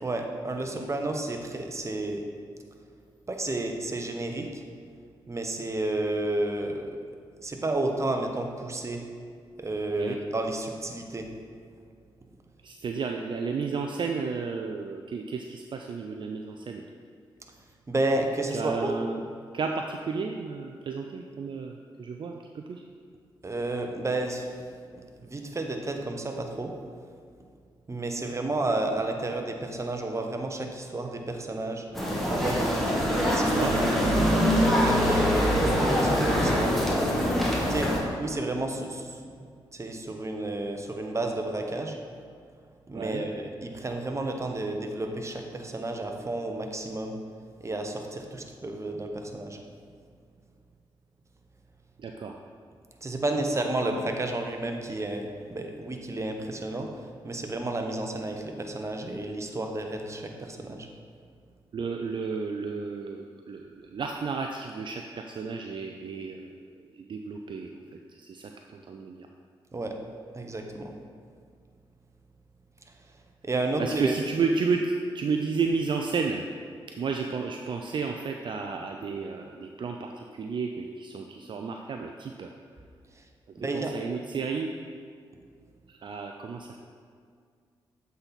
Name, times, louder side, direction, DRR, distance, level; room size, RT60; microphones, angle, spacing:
voice 1, 0.0-2.2 3.3-4.6 5.3-6.9 7.4-9.0 9.6-11.3 17.9-18.9 23.4-24.5 25.2-26.7 27.9-31.9 32.2-34.0 34.4-36.8 37.7-37.9 38.2-39.1 39.4-39.5 39.7-42.0 42.9-47.2 47.6-49.6 53.0-56.9 57.2-60.9 69.7-69.9 70.3-70.9 73.4-74.1 83.6-83.9, right 2 dB, 30° right, 3 dB, 0.9 m, -31 dB
voice 2, 12.6-16.9 18.5-19.2 19.5-22.8 33.5-33.7 42.9-43.2 52.0-52.3 61.7-66.5 67.0-67.7 68.2-69.3 73.8-76.4 76.9-82.5 83.7-84.7 85.9-86.8, right 5 dB, 55° right, 3 dB, 0.4 m, -32 dB
sound 1, 31.9-38.0, equal, ahead, 1.6 m, -24 dB
7.7 x 4.1 x 4.0 m, 2.2 s
supercardioid pair, 55°, 10 cm